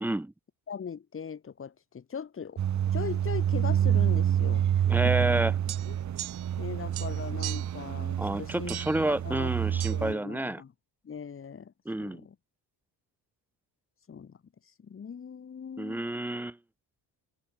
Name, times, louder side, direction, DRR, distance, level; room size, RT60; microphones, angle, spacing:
voice 1, 0.0-0.3 4.9-5.5 8.2-10.6 11.8-12.3 15.8-16.6, right 1 dB, 5° right, 1.1 m, -29 dB
voice 2, 0.7-2.6 2.9-4.7 5.0-5.3 5.9-6.0 6.6-8.8 9.1-9.5 9.9-10.7 11.0-11.7 12.0-12.3 14.1-14.4 14.8-16.0, left 7 dB, 30° left, 6.3 m, -39 dB
sound 1, 2.6-10.1, right 10 dB, 45° right, 2.6 m, -28 dB
sound 2, 5.7-6.7 6.9-7.8 8.7-9.1 9.8-10.0, right 15 dB, 70° right, 1.8 m, -40 dB
cardioid pair, 155°, 40 cm